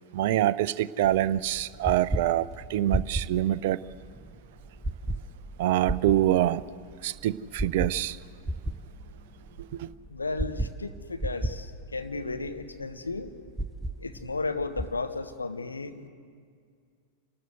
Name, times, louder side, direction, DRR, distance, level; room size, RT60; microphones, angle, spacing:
voice 1, 0.1-3.8 5.6-6.6 7.0-8.2 9.8-9.9, right 13 dB, 50° right, 0.4 m, -25 dB
sound 1, 1.0-15.0, right 1 dB, 10° right, 0.6 m, -35 dB
voice 2, 10.1-13.3 14.0-16.1, left 3 dB, 80° left, 1.1 m, -34 dB
27.5 x 12.5 x 7.9 m
figure-of-eight pair, 90°, 0 cm